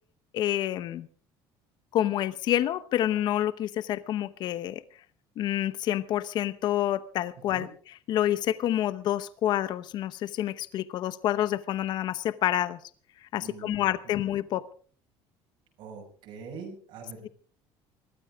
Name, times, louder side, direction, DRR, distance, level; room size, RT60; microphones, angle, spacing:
voice 1, 0.3-1.1 1.9-4.8 5.4-7.7 8.1-12.8 13.3-14.7, left 12 dB, 50° left, 15 dB, 0.8 m, -28 dB
voice 2, 13.4-14.2 15.8-17.3, right 5 dB, 65° right, 0 dB, 5.8 m, -44 dB
21.5 x 14.5 x 3.5 m, 0.43 s
cardioid pair, 160°, 10 cm